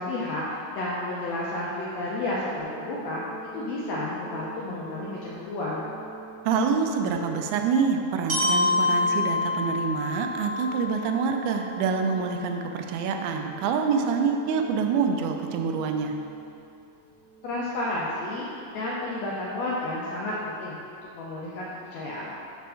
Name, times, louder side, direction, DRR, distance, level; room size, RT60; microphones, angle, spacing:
voice 1, 0.0-3.2 3.5-5.9 17.4-20.8 21.1-22.3, left 2 dB, 75° left, -6 dB, 1.7 m, -31 dB
sound 1, 2.6-17.6, right 6 dB, 60° right, 1.7 m, -45 dB
voice 2, 6.5-16.2, right 5 dB, 80° right, 4 dB, 1.9 m, -26 dB
Glockenspiel, 8.3-12.3, left 3 dB, 35° right, 1.1 m, -27 dB
5.1 x 4.6 x 5.5 m, 2.6 s
omnidirectional pair, 3.5 m